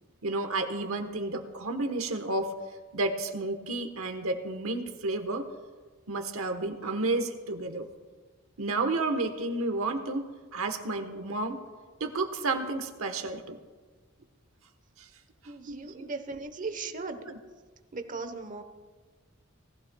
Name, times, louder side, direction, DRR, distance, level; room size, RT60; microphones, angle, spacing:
voice 1, 0.2-2.5 2.9-5.4 6.1-7.9 8.6-11.6 12.0-13.6 15.0-15.1 15.7-16.1 17.3-17.4, right 2 dB, 85° right, 6 dB, 1.1 m, -31 dB
voice 2, 15.5-17.3 17.9-18.6, right 3 dB, 40° right, 7 dB, 0.9 m, -37 dB
18.5 x 14.5 x 2.3 m, 1.4 s
head